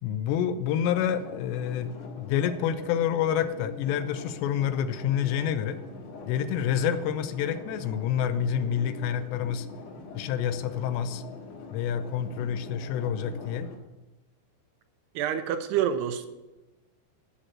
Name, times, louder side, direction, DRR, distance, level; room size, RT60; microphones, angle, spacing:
voice 1, 0.0-1.9 2.2-5.8 6.3-9.7 10.1-11.2 11.7-13.7, left 9 dB, 85° left, 10 dB, 3.0 m, -28 dB
sound 1, 0.6-13.8, left 4 dB, 70° left, 3.9 m, -43 dB
voice 2, 15.2-16.3, right 9 dB, 75° right, 8 dB, 2.8 m, -27 dB
13.5 x 6.5 x 7.6 m, 1.1 s
omnidirectional pair, 4.9 m